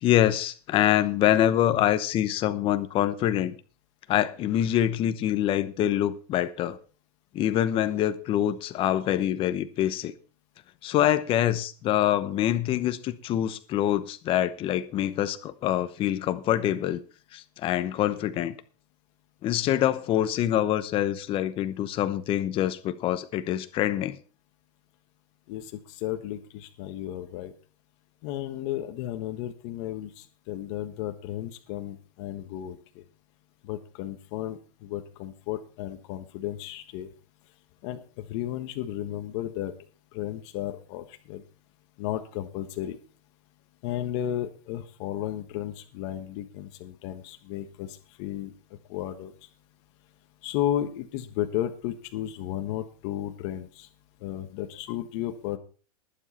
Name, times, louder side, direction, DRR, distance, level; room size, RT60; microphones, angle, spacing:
voice 1, 0.0-3.5 4.1-6.8 7.3-10.1 10.8-17.0 17.3-18.5 19.4-24.2, left 12 dB, 25° left, 0.9 m, -25 dB
voice 2, 25.5-27.5 28.2-33.0 33.6-37.1 37.8-39.7 40.1-41.4 42.0-43.0 43.8-48.5 48.9-49.3 50.4-53.9 54.2-55.6, left 12 dB, 45° left, 1.4 m, -33 dB
20.5 x 7.4 x 4.3 m
supercardioid pair, 155°, 20 cm